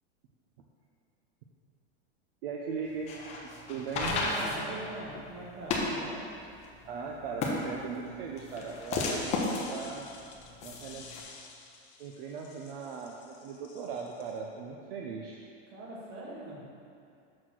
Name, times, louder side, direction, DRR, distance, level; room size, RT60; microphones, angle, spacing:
voice 1, 2.4-4.1 6.8-10.1 10.6-11.1 12.0-15.4, right 5 dB, 60° right, 0 dB, 0.7 m, -39 dB
sound 1, 2.9-11.2, left 3 dB, 20° left, 0.7 m, -34 dB
voice 2, 4.1-6.3 15.7-16.6, right 1 dB, 35° right, -6 dB, 1.8 m, -41 dB
sound 2, 9.0-14.4, left 5 dB, 80° left, 1.2 m, -50 dB
6.4 x 4.2 x 6.0 m, 2.5 s
supercardioid pair, 170°, 32 cm